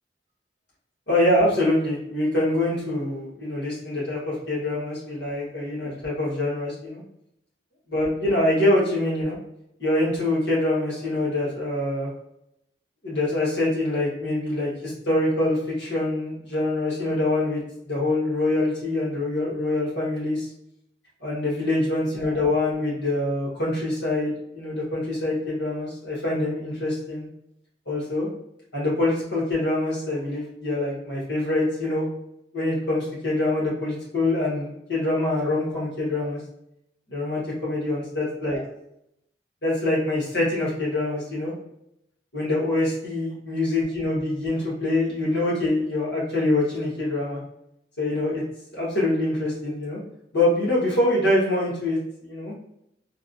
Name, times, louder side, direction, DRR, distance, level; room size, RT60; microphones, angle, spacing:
voice 1, 1.1-7.0 7.9-9.4 9.8-12.1 13.0-20.4 21.2-27.3 27.9-28.3 28.7-32.0 32.5-36.4 37.1-38.6 39.6-41.5 42.3-47.4 48.0-48.4 48.7-50.0 50.3-52.5, left 1 dB, 90° left, -7 dB, 1.4 m, -25 dB
3.4 x 2.3 x 2.6 m, 0.80 s
head